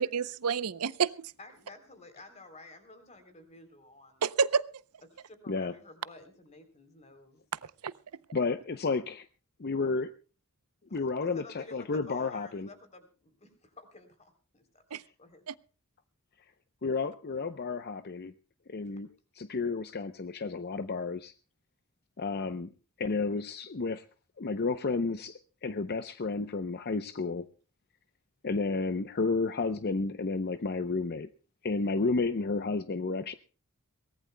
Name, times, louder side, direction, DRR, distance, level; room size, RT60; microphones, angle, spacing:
voice 1, 0.0-1.3 4.2-4.6 7.6-7.9 14.9-15.0 15.5-15.6, right 6 dB, 80° right, 17 dB, 0.6 m, -29 dB
voice 2, 1.4-4.2 5.1-7.4 11.3-15.4 18.9-19.0, left 2 dB, 30° left, 8 dB, 3.3 m, -52 dB
voice 3, 8.3-9.3 9.6-10.1 10.9-12.7 16.8-18.3 18.7-19.1 19.3-21.3 22.2-22.7 23.0-24.0 24.4-27.5 28.4-31.3 31.6-33.3, left 3 dB, 45° left, 11 dB, 0.6 m, -31 dB
23.0 x 18.0 x 2.2 m, 0.36 s
head